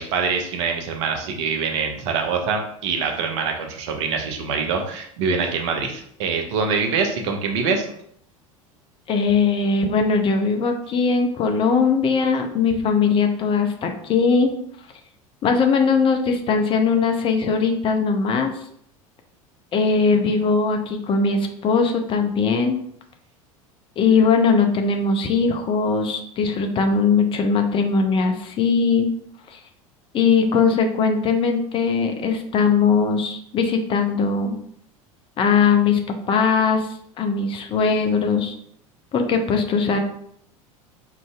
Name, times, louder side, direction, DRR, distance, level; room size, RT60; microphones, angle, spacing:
voice 1, 0.0-7.9, right 5 dB, 55° right, 4 dB, 0.7 m, -24 dB
voice 2, 9.1-14.5 15.4-18.5 19.7-22.8 24.0-29.1 29.5-29.6 30.1-34.6 35.4-36.0 36.3-36.9 37.2-38.5 39.1-40.0, left 5 dB, 30° left, 4 dB, 0.5 m, -20 dB
4.8 x 2.6 x 2.3 m, 0.68 s
figure-of-eight pair, 75°, 18 cm